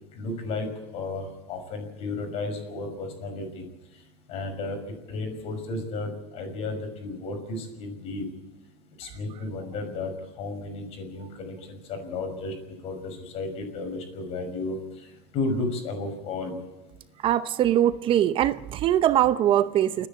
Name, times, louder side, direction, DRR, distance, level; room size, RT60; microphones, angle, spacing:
voice 1, 0.1-3.6 4.3-8.3 9.0-10.1 10.4-12.5 12.8-16.6, left 2 dB, 50° left, 6.1 m, -33 dB
voice 2, 17.2-20.1, right 11 dB, 40° right, 0.7 m, -22 dB
30.0 x 10.0 x 8.7 m
supercardioid pair, 130°, 13 cm